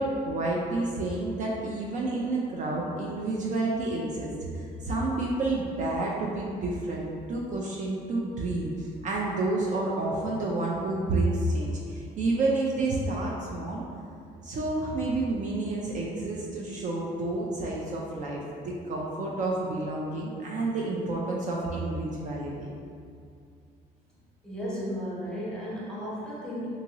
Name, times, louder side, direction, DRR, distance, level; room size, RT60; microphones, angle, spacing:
voice 1, 0.0-13.8 14.4-22.7, right 2 dB, 45° right, -3 dB, 0.4 m, -29 dB
voice 2, 24.4-26.7, equal, 5° left, -7 dB, 0.8 m, -34 dB
2.7 x 2.7 x 2.9 m, 2.4 s
cardioid pair, 110°, 17 cm